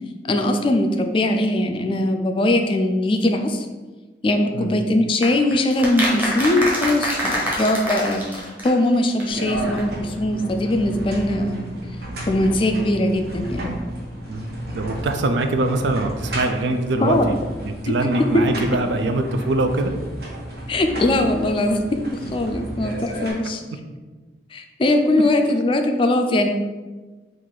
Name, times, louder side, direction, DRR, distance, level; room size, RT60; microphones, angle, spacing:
voice 1, 0.3-3.7 4.2-8.4 8.6-11.7 12.3-13.7 17.0-17.3 20.7-21.8 22.3-23.6 24.5-26.5, left 1 dB, 30° left, 5 dB, 0.3 m, -20 dB
sound 1, 5.2-8.9 9.2-9.3 9.5-9.6 9.8-9.9, equal, 10° right, 0.8 m, -25 dB
sound 2, 9.3-23.3, right 1 dB, 60° right, 0.9 m, -33 dB
voice 2, 14.3-17.4 17.6-19.9 23.4-23.8, right 2 dB, 85° right, 7 dB, 0.4 m, -23 dB
3.8 x 2.5 x 4.5 m, 1.3 s
head